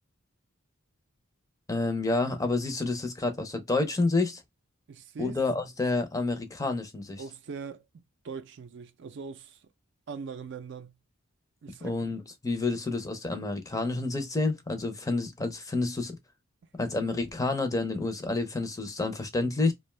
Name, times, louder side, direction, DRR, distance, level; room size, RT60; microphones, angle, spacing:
voice 1, 1.7-4.4 5.2-7.2 11.8-16.2 16.8-19.7, left 3 dB, 15° left, 0.5 m, -29 dB
voice 2, 4.9-5.4 7.2-9.7 10.1-11.0 11.6-12.0 12.7-12.8, right 5 dB, 60° right, 0.4 m, -41 dB
2.6 x 2.2 x 3.1 m
head